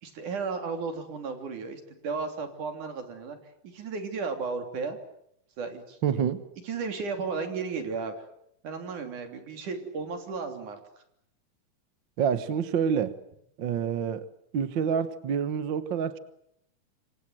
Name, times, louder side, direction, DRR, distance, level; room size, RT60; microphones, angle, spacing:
voice 1, 0.0-3.4 3.6-5.0 5.6-6.2 6.6-8.2 8.6-10.8, right 4 dB, 75° right, 4.6 m, -34 dB
voice 2, 6.0-6.4 12.2-13.2 13.6-14.3 14.5-16.2, right 7 dB, 55° right, 1.4 m, -27 dB
27.0 x 24.5 x 7.9 m
omnidirectional pair, 3.6 m